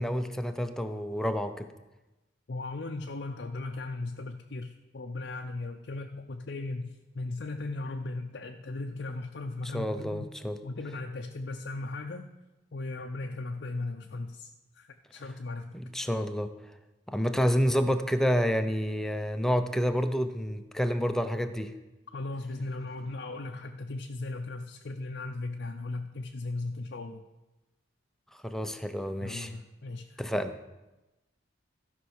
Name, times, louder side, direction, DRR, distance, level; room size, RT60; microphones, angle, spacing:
voice 1, 0.0-1.7 9.7-10.6 15.7-16.5 17.1-21.7 28.4-29.5 30.2-30.5, equal, 5° left, 8 dB, 0.6 m, -29 dB
voice 2, 2.5-10.3 10.6-12.3 12.7-14.5 14.8-15.7 22.1-27.2 29.2-30.2, left 2 dB, 60° left, 3 dB, 0.6 m, -37 dB
13.5 x 5.5 x 6.4 m, 1.0 s
head